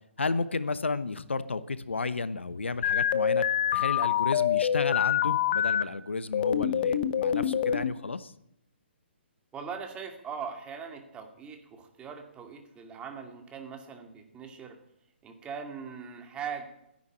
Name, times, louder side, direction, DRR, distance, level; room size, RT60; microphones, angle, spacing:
voice 1, 0.2-3.4 3.7-8.3, left 3 dB, 80° left, 15 dB, 0.9 m, -32 dB
sound 1, 2.8-5.8 6.3-7.9, left 9 dB, 45° left, 1.0 m, -26 dB
voice 2, 9.5-14.8 15.2-16.7, right 6 dB, 15° right, 5 dB, 2.3 m, -40 dB
13.5 x 10.5 x 8.6 m, 0.78 s
figure-of-eight pair, 135°, 6 cm